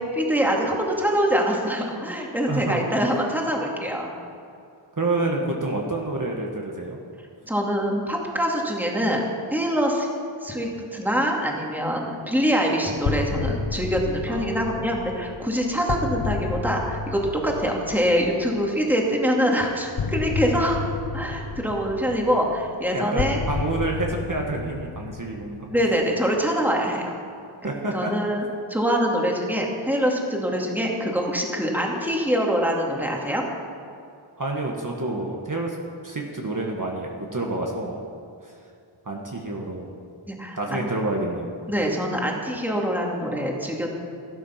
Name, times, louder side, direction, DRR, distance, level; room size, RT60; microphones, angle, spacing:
voice 1, 0.1-4.1 7.5-9.2 9.5-10.1 10.4-20.8 21.1-23.4 25.7-27.1 27.9-28.4 28.7-33.4 40.3-40.9 41.7-43.9, equal, 5° right, -1 dB, 2.4 m, -24 dB
voice 2, 2.5-2.8 5.0-7.0 14.3-14.6 22.9-25.7 27.6-28.1 34.4-35.8 36.0-38.0 38.4-38.5 39.0-39.9 40.6-41.5, right 2 dB, 40° right, -1 dB, 1.6 m, -28 dB
sound 1, 13.0-18.8 20.0-26.2, left 5 dB, 80° left, 0.9 m, -31 dB
13.5 x 12.5 x 5.8 m, 2.5 s
wide cardioid pair, 65°, 48 cm